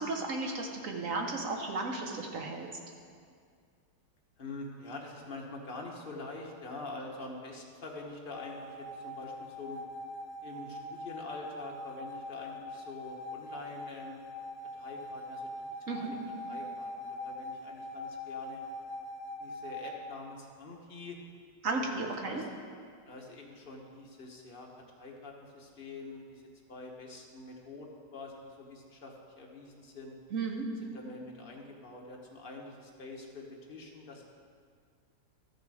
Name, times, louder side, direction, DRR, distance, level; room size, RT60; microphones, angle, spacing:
voice 1, 0.0-2.7 15.9-16.1 21.6-22.4 30.3-30.7, right 3 dB, 55° right, 2 dB, 1.2 m, -34 dB
voice 2, 4.4-9.8 10.4-14.2 14.7-15.5 15.8-16.2 16.5-18.6 19.4-21.2 21.8-22.5 23.1-24.7 25.0-30.2 30.8-34.2, left 3 dB, 35° left, 0 dB, 1.2 m, -45 dB
sound 1, 8.3-20.0, left 1 dB, 80° left, 1.3 m, -42 dB
13.0 x 6.6 x 4.8 m, 2.2 s
omnidirectional pair, 1.9 m